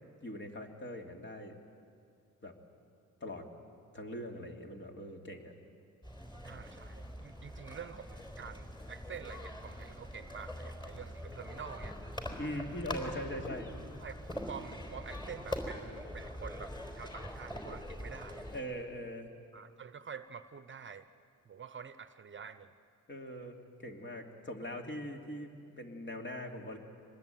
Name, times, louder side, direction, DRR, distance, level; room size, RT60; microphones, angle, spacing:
voice 1, 0.2-1.5 2.4-2.5 3.2-3.5 3.9-5.5 12.4-13.7 18.5-19.3 23.1-26.8, equal, 35° left, 3 dB, 2.8 m, -41 dB
sound 1, 6.0-18.6, left 1 dB, 15° left, 4.1 m, -43 dB
voice 2, 6.4-12.0 13.4-13.5 14.0-18.5 19.5-21.1 21.4-22.7, right 7 dB, 40° right, 12 dB, 0.9 m, -47 dB
25.0 x 20.5 x 9.3 m, 2.4 s
cardioid pair, 100°, 31 cm